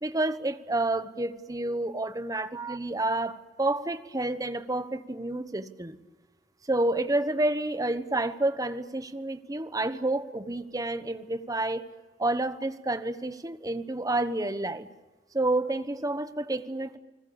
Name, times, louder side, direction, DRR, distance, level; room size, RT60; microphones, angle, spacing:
voice 1, 0.0-6.0 6.7-11.8 12.2-14.9 15.3-17.0, right 2 dB, 20° right, 11 dB, 1.2 m, -29 dB
30.0 x 21.0 x 7.1 m, 1.2 s
head